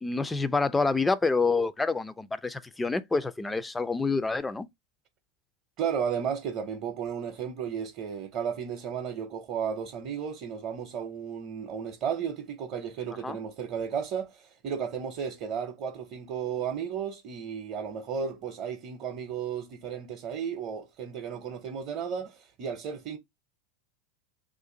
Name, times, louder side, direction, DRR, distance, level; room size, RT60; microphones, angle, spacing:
voice 1, 0.0-4.7 13.2-13.4, left 4 dB, 10° left, 0.3 m, -27 dB
voice 2, 5.8-23.2, right 7 dB, 50° right, 0.7 m, -34 dB
2.5 x 2.5 x 3.7 m
hypercardioid pair, 100°, 0 cm